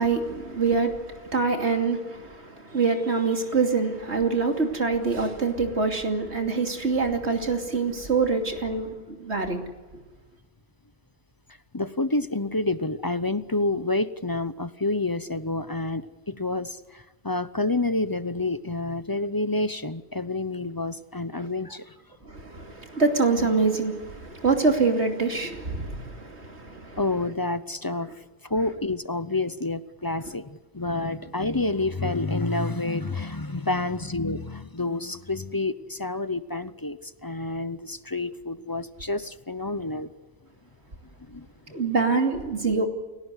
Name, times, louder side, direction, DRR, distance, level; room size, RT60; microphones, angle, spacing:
voice 1, 0.0-9.6 22.2-27.0 41.7-42.9, right 4 dB, 85° right, 4 dB, 3.1 m, -25 dB
voice 2, 11.7-22.0 27.0-28.1 28.4-40.1 41.2-41.8, left 2 dB, 25° left, 14 dB, 0.7 m, -29 dB
30.0 x 17.0 x 8.1 m, 1.2 s
omnidirectional pair, 1.1 m